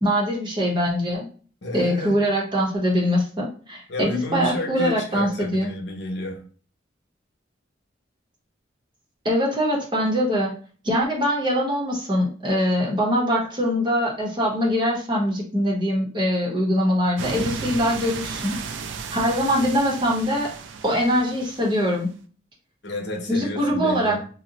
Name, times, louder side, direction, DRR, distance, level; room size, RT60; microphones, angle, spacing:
voice 1, 0.0-1.3 1.7-5.7 9.2-10.6 10.8-18.6 19.1-20.5 20.8-22.1 23.3-24.3, equal, 25° right, 0.7 m, -23 dB
voice 2, 1.6-2.2 3.9-6.4 22.8-24.2, left 1 dB, 65° left, 0.8 m, -31 dB
sound 1, 17.2-22.0, right 5 dB, 80° right, 0.4 m, -34 dB
2.6 x 2.0 x 3.9 m
head